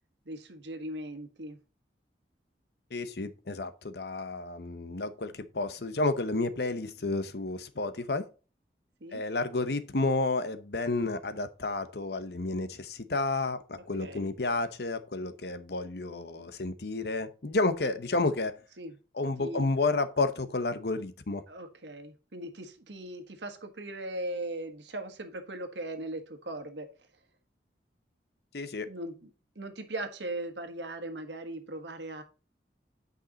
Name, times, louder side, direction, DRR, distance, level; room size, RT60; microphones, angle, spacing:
voice 1, 0.2-1.6 9.0-9.2 13.8-14.3 18.8-19.0 19.4-19.7 21.5-27.2 28.9-29.3 29.5-32.2, right 1 dB, 85° right, 1.4 m, -39 dB
voice 2, 2.9-8.3 9.1-18.6 19.2-21.4 28.5-28.9, left 3 dB, 65° left, 0.9 m, -31 dB
9.0 x 5.4 x 4.0 m
head